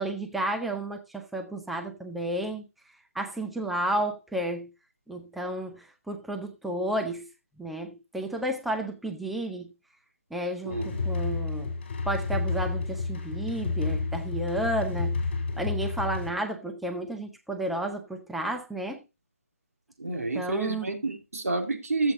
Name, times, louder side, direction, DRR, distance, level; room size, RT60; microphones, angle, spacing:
voice 1, 0.0-2.6 3.1-4.7 5.1-7.3 7.6-9.7 10.3-11.7 12.1-15.2 15.6-19.0 20.1-20.9, right 1 dB, ahead, 0.6 m, -32 dB
voice 2, 10.6-11.2 20.0-22.1, right 3 dB, 90° right, 2.9 m, -30 dB
sound 1, 10.7-16.3, left 4 dB, 45° left, 3.3 m, -30 dB
14.5 x 8.0 x 2.6 m
hypercardioid pair, 160°, 8 cm